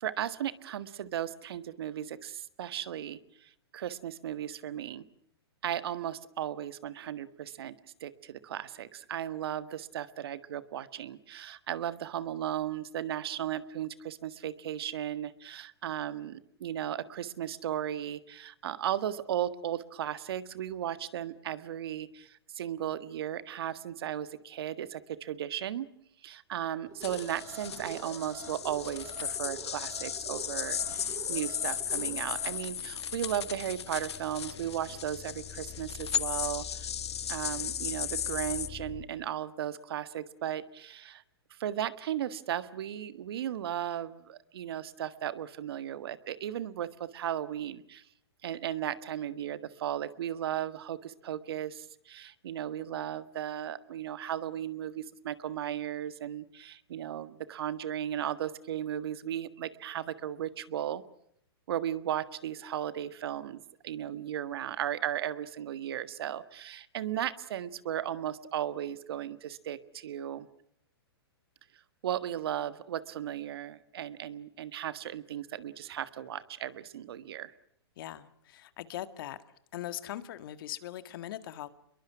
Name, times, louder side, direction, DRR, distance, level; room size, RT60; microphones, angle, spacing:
voice 1, 0.0-5.0 5.6-25.9 26.2-36.9 37.3-41.2 41.5-48.0 48.4-61.0 61.7-70.5 72.0-77.5, right 10 dB, 65° right, 12 dB, 1.6 m, -36 dB
Alarm, 26.9-32.5, right 7 dB, 20° right, 3.2 m, -47 dB
sound 1, 27.0-38.7, left 8 dB, 80° left, 1.2 m, -36 dB
sound 2, 28.6-39.0, left 7 dB, 20° left, 2.6 m, -49 dB
voice 2, 78.0-79.4 79.7-81.7, left 13 dB, 55° left, 11 dB, 1.8 m, -40 dB
28.5 x 22.5 x 6.0 m, 0.72 s
hypercardioid pair, 135°, 14 cm